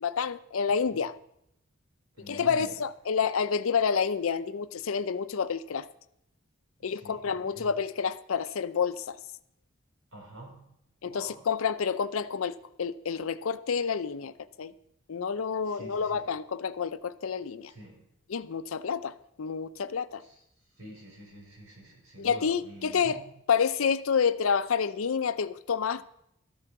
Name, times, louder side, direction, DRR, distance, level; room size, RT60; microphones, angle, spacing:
voice 1, 0.0-1.1 2.3-5.9 6.8-9.2 11.0-14.3 14.6-14.7 15.1-17.7 18.3-20.2 22.2-23.2 23.5-26.0, left 6 dB, 85° left, 0.5 m, -29 dB
voice 2, 0.7-1.0 2.2-2.7 6.9-7.8 10.1-10.6 11.0-11.4 15.6-16.2 17.7-18.0 20.2-20.4 20.8-23.3, right 1 dB, 90° right, 4.7 m, -47 dB
13.5 x 8.1 x 6.0 m
head